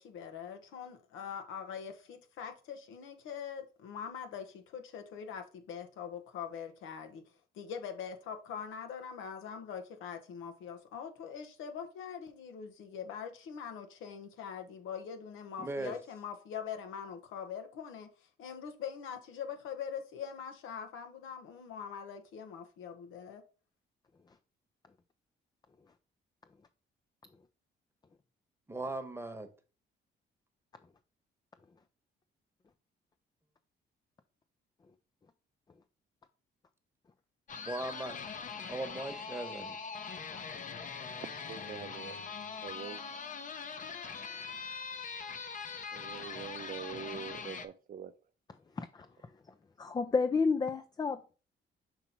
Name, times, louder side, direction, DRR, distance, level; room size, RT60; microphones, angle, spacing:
voice 1, 0.0-7.2 7.5-23.4, left 7 dB, 90° left, 1.0 m, -43 dB
voice 2, 15.6-15.9 28.7-29.5 37.6-38.2 38.7-39.8, right 2 dB, 10° right, 1.1 m, -38 dB
sound 1, 37.5-47.7, left 5 dB, 40° left, 0.7 m, -42 dB
voice 3, 41.2-42.3 42.6-43.0 45.9-48.1, right 8 dB, 45° right, 0.5 m, -44 dB
voice 4, 48.8-51.2, left 4 dB, 20° left, 0.4 m, -32 dB
5.9 x 2.9 x 5.4 m
cardioid pair, 90°, 20 cm